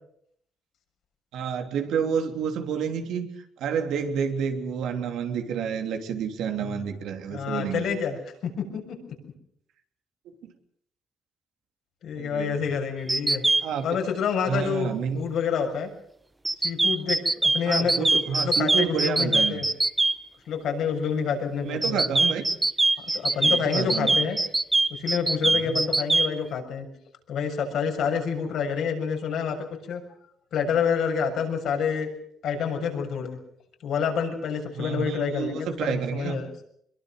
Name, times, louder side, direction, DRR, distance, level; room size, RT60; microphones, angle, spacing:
voice 1, 1.3-3.3 3.6-7.8 10.4-10.5 12.2-12.6 13.6-14.0 14.5-15.2 17.6-19.6 21.6-22.4 23.4-24.2 25.4-25.8 34.7-36.4, right 7 dB, 85° right, 5 dB, 3.3 m, -29 dB
voice 2, 7.3-8.2 8.4-9.3 12.0-13.4 13.8-14.9 15.1-15.9 16.6-19.7 20.5-22.0 23.0-24.4 24.9-26.9 27.3-29.6 29.9-30.0 30.5-32.1 32.4-33.4 33.8-36.5, left 6 dB, 75° left, 3 dB, 6.9 m, -28 dB
sound 1, 13.1-13.6 16.4-20.1 21.8-26.3, right 2 dB, 15° right, 1.1 m, -22 dB
24.0 x 22.5 x 6.7 m, 0.67 s
cardioid pair, 90°, 0 cm